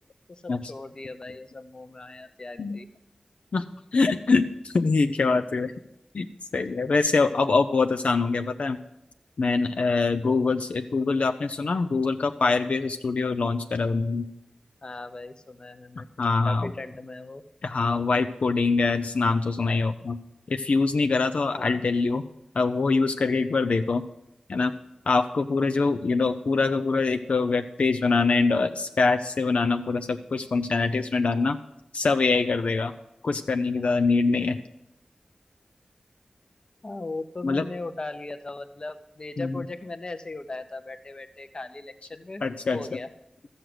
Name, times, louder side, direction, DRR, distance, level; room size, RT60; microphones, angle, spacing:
voice 1, 0.3-2.9 14.8-16.1 16.4-17.4 21.5-21.8 36.8-42.4 42.7-43.1, left 2 dB, 40° left, 9 dB, 0.8 m, -38 dB
voice 2, 3.9-5.7 6.1-6.3 6.5-8.8 9.4-14.3 16.2-16.7 17.6-20.2 20.5-22.2 22.6-24.0 24.5-24.7 25.1-31.6 31.9-32.9 33.2-34.6 37.4-37.6 39.4-39.5 42.4-42.8, left 4 dB, 80° left, 8 dB, 0.5 m, -24 dB
14.0 x 6.5 x 7.8 m, 0.82 s
wide cardioid pair, 85°, 2 cm